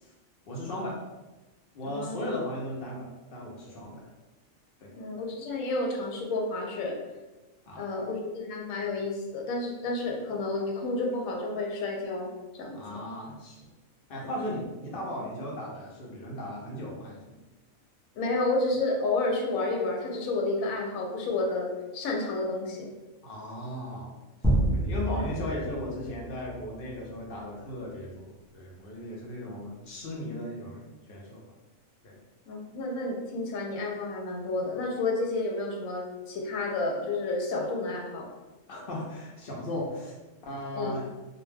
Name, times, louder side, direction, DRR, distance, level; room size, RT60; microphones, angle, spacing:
voice 1, 0.5-1.0 1.7-4.0 4.8-5.0 7.7-7.9 12.7-13.7 14.1-17.2 23.2-24.2 24.7-31.4 32.0-32.2 38.7-40.1 40.4-41.1, left 1 dB, 60° left, -3 dB, 0.6 m, -37 dB
voice 2, 1.8-2.2 5.0-7.0 7.8-13.0 18.2-22.9 25.1-25.3 32.5-38.3 40.7-41.0, left 2 dB, 80° left, 0 dB, 1.0 m, -31 dB
sound 1, 24.4-27.0, right 1 dB, 5° left, 0.3 m, -28 dB
2.4 x 2.2 x 3.2 m, 1.1 s
omnidirectional pair, 1.4 m